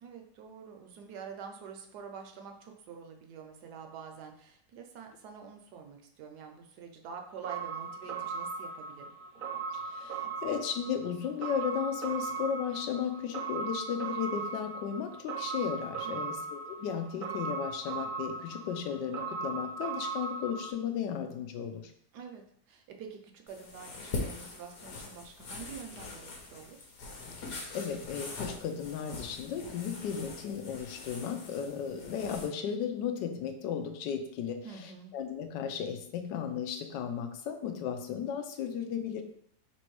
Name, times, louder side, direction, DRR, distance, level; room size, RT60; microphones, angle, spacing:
voice 1, 0.0-9.1 16.0-16.4 22.1-26.8 34.6-35.1, right 6 dB, 75° right, 4 dB, 1.1 m, -47 dB
sound 1, 7.4-20.7, right 5 dB, 45° right, 0.7 m, -38 dB
voice 2, 9.7-21.9 27.3-39.2, left 7 dB, 90° left, 6 dB, 1.3 m, -35 dB
sound 2, 23.5-32.5, left 3 dB, 70° left, 1.5 m, -42 dB
3.4 x 2.9 x 4.6 m, 0.66 s
omnidirectional pair, 1.9 m